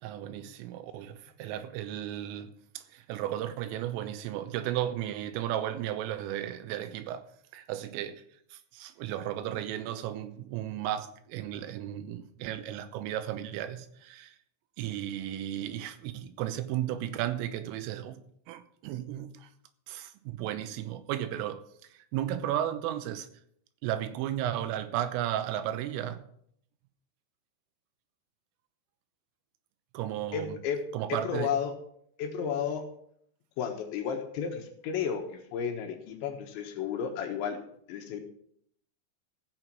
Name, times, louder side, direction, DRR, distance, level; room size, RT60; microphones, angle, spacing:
voice 1, 0.0-2.5 2.8-7.2 7.5-8.2 8.5-14.4 14.8-18.2 18.5-19.5 19.9-21.6 22.1-23.3 23.8-26.2 30.0-30.6 30.9-31.5, right 12 dB, 90° right, 3.5 m, -34 dB
voice 2, 30.3-30.8 31.1-31.7 32.2-32.8 33.6-37.6 37.9-38.2, left 7 dB, 70° left, 3.4 m, -32 dB
16.0 x 6.3 x 6.1 m
omnidirectional pair, 5.7 m